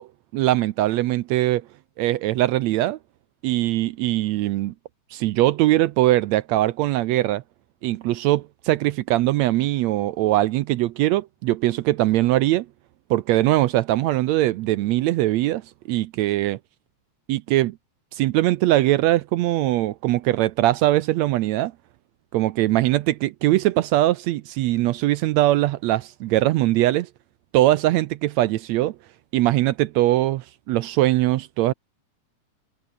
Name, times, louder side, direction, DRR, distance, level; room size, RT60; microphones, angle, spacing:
voice 1, 0.0-1.6 2.0-3.0 3.4-4.7 5.1-7.4 7.8-12.7 13.1-15.6 15.9-16.6 17.3-17.8 18.1-21.7 22.3-27.1 27.5-29.0 29.3-31.7, right 15 dB, 75° right, 1.8 m, -21 dB
omnidirectional pair, 3.4 m